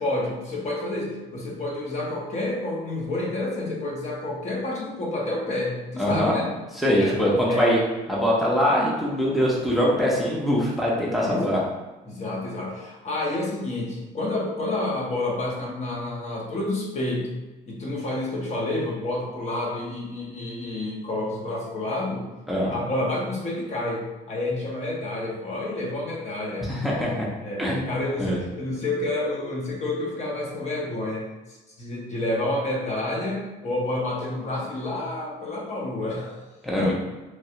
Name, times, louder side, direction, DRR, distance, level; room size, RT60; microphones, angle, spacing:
voice 1, 0.0-6.5 6.8-7.2 7.4-7.7 11.2-11.5 12.0-17.3 17.7-22.3 22.7-26.7 27.4-31.3 31.8-36.5 36.8-36.9, left 2 dB, 40° left, -3 dB, 0.8 m, -29 dB
voice 2, 6.0-6.3 6.8-7.8 8.1-11.6 22.5-22.7 26.7-27.3 27.6-28.4 36.6-36.9, equal, ahead, -5 dB, 0.6 m, -23 dB
3.1 x 2.3 x 2.8 m, 1.2 s
cardioid pair, 110°, 17 cm